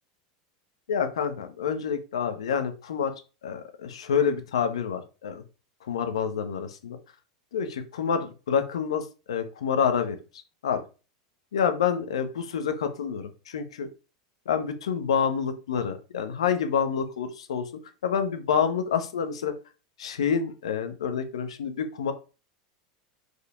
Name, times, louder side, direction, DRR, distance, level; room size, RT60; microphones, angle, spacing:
voice 1, 0.9-3.1 3.4-5.4 5.9-7.0 7.5-10.2 10.6-10.8 11.5-13.9 14.5-17.7 18.0-19.5 20.0-22.1, left 7 dB, 85° left, 8 dB, 1.2 m, -27 dB
5.0 x 4.7 x 4.9 m, 0.33 s
hypercardioid pair, 100°, 3 cm